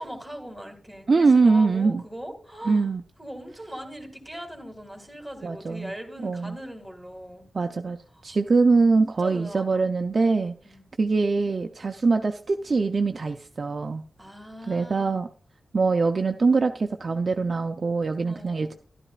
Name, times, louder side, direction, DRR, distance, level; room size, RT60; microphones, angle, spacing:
voice 1, 0.0-2.9 3.2-7.5 8.2-8.3 8.9-9.9 10.6-10.8 14.2-15.2 18.2-18.7, equal, ahead, 3 dB, 2.1 m, -40 dB
voice 2, 1.1-2.0 2.7-3.0 5.4-5.9 6.2-6.6 7.5-8.0 8.2-10.5 11.0-14.0 14.7-15.3 15.7-18.7, right 4 dB, 45° right, 5 dB, 0.5 m, -23 dB
13.0 x 12.0 x 2.4 m, 0.38 s
wide cardioid pair, 135°, 0 cm